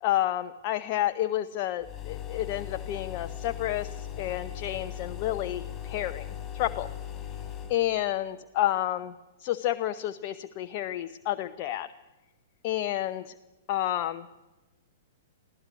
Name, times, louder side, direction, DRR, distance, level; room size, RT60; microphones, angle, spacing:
voice 1, 0.0-6.3 6.5-6.9 7.7-9.1 9.4-11.9 12.6-13.3 13.7-14.3, left 13 dB, 40° left, 9 dB, 0.8 m, -30 dB
sound 1, 1.8-7.8, left 11 dB, 20° left, 4.7 m, -38 dB
25.0 x 16.5 x 9.3 m, 1.1 s
figure-of-eight pair, 110°, 0 cm